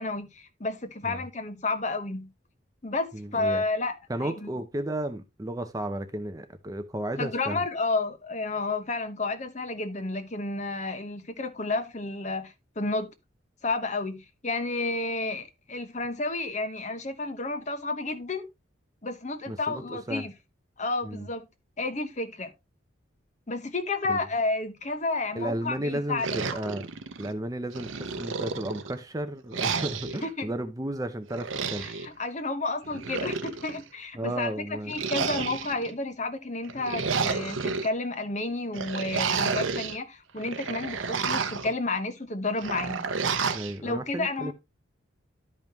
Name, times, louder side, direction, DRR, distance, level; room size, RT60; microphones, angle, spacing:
voice 1, 0.0-2.3 2.8-3.9 4.2-4.5 7.2-13.1 13.6-18.5 19.0-20.3 20.8-21.5 21.8-22.5 23.5-26.4 30.2-30.5 31.8-43.1 43.8-44.5, left 3 dB, 35° left, 1.0 m, -31 dB
voice 2, 3.1-3.6 4.1-7.6 19.5-20.3 21.0-21.3 24.1-24.3 25.3-26.9 27.2-31.9 34.2-35.0 43.5-44.5, right 1 dB, 15° right, 0.6 m, -33 dB
sound 1, 26.2-27.3 27.7-29.0 29.5-30.3 31.3-32.1 32.8-33.8 34.9-35.9 36.6-37.9 38.7-40.0 40.4-41.7 42.6-43.7, right 5 dB, 75° right, 0.8 m, -31 dB
12.0 x 5.3 x 2.9 m
head